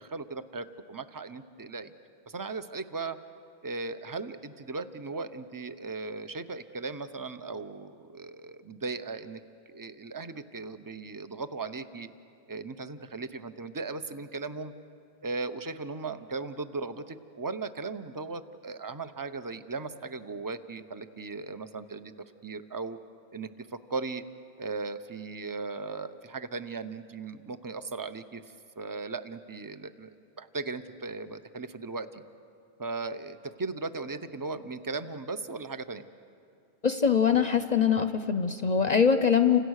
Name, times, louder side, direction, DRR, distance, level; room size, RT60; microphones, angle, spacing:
voice 1, 0.0-1.9 2.3-3.2 3.6-9.4 9.7-12.1 12.5-14.7 15.2-22.1 22.4-23.0 23.3-24.2 24.6-30.1 30.4-32.2 32.8-36.1, right 3 dB, 20° right, 10 dB, 0.7 m, -37 dB
voice 2, 36.8-39.6, left 7 dB, 45° left, 9 dB, 0.8 m, -23 dB
30.0 x 26.0 x 6.5 m, 2.5 s
omnidirectional pair, 1.1 m